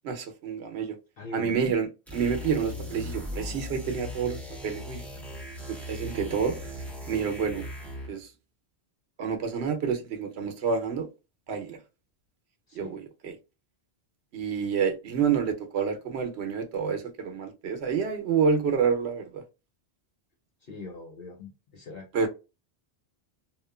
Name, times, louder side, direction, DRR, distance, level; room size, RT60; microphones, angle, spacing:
voice 1, 0.0-0.9 1.3-5.0 5.7-6.7 7.1-7.7 8.1-8.3 9.2-11.1 11.5-11.8 12.7-13.3 14.3-19.4 22.1-22.3, right 6 dB, 85° right, 0.9 m, -28 dB
voice 2, 1.2-1.7 6.1-6.4 12.7-13.0 20.6-22.1, left 3 dB, 65° left, 0.8 m, -42 dB
sound 1, 2.1-8.2, left 1 dB, ahead, 0.7 m, -38 dB
2.9 x 2.1 x 2.2 m
omnidirectional pair, 1.1 m